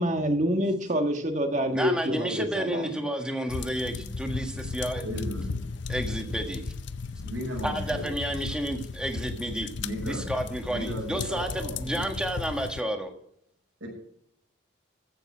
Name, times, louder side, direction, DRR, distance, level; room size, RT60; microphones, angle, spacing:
voice 1, 0.0-2.9, equal, 35° right, 6 dB, 1.4 m, -27 dB
voice 2, 1.7-5.0 5.9-6.6 7.6-9.7 10.0-13.1, right 1 dB, 5° right, 3 dB, 1.6 m, -31 dB
sound 1, 3.5-12.8, left 4 dB, 60° left, 0.6 m, -35 dB
voice 3, 5.0-5.7 7.2-8.1 9.8-10.3 10.7-12.1 13.8-13.9, equal, 75° right, -1 dB, 6.0 m, -36 dB
14.5 x 6.8 x 6.1 m, 0.69 s
head